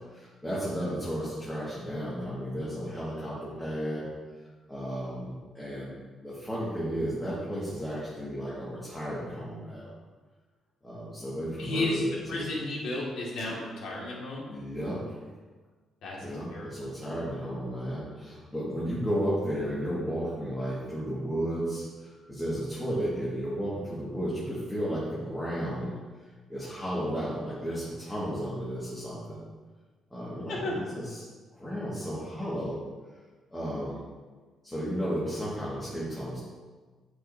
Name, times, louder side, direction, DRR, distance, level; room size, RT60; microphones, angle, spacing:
voice 1, 0.0-4.1 4.7-6.0 6.2-9.9 10.8-12.5 13.5-13.6 14.5-15.0 16.2-26.0 26.5-29.4 30.1-31.2 31.5-32.8 33.5-34.0 34.6-36.4, equal, 15° left, -9 dB, 1.8 m, -33 dB
voice 2, 11.6-12.0 12.3-14.5 16.0-16.9 30.5-30.7, left 2 dB, 75° left, -4 dB, 2.0 m, -33 dB
7.9 x 5.0 x 2.7 m, 1.4 s
cardioid pair, 90°, 0 cm